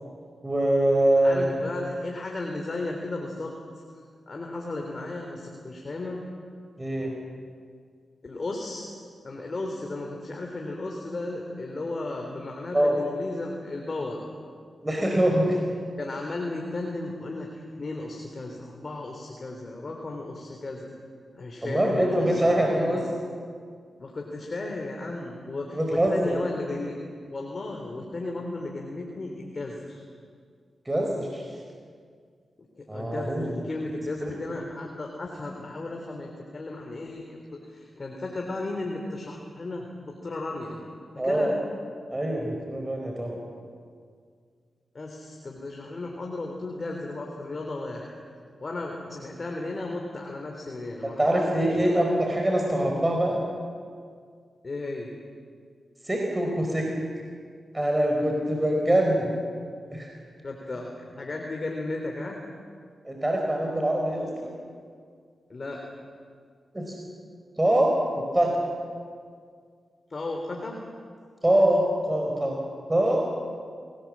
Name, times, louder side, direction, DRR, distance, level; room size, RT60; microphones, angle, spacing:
voice 1, 0.4-1.4 6.8-7.1 12.7-13.0 14.8-15.6 21.6-23.0 25.7-26.4 30.8-31.4 32.9-33.5 34.3-34.4 41.2-41.5 42.1-43.4 51.2-53.4 56.0-56.9 57.7-59.3 59.9-60.1 63.0-64.5 66.7-67.0 67.6-68.6 71.4-72.6 72.9-73.3, right 1 dB, 20° right, 0 dB, 4.6 m, -24 dB
voice 2, 1.2-3.5 4.3-6.2 8.2-8.8 9.2-14.2 16.0-20.9 21.3-23.0 24.0-27.0 27.3-30.0 32.7-40.8 41.1-41.5 44.9-48.2 48.6-52.1 54.6-55.1 60.4-62.4 65.5-65.8 70.1-70.8, left 2 dB, 50° left, 1 dB, 3.5 m, -35 dB
24.0 x 19.0 x 7.5 m, 2.1 s
supercardioid pair, 40°, 0 cm